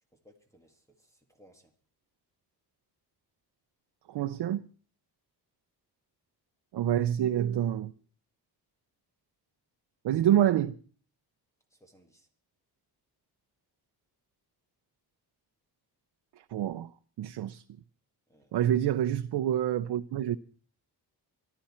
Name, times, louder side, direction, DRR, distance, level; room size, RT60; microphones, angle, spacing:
voice 1, 0.1-1.7 11.7-12.3 18.3-18.5, equal, 5° left, 1.9 m, -62 dB
voice 2, 4.1-4.7 6.7-7.9 10.0-10.8 16.5-16.9 17.2-17.6 18.5-20.4, right 11 dB, 90° right, 0.7 m, -27 dB
24.5 x 12.0 x 4.3 m
wide cardioid pair, 165°, 40 cm